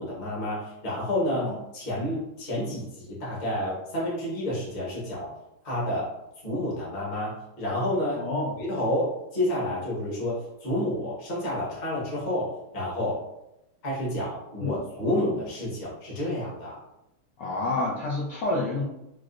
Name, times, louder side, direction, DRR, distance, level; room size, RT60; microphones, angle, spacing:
voice 1, 0.0-5.3 5.6-6.1 6.4-8.2 8.6-13.2 13.8-16.8, left 1 dB, 30° left, -6 dB, 0.9 m, -29 dB
voice 2, 8.2-8.6 14.6-14.8 17.4-18.8, left 2 dB, 70° left, -5 dB, 1.1 m, -28 dB
4.7 x 2.0 x 2.5 m, 0.86 s
omnidirectional pair, 2.3 m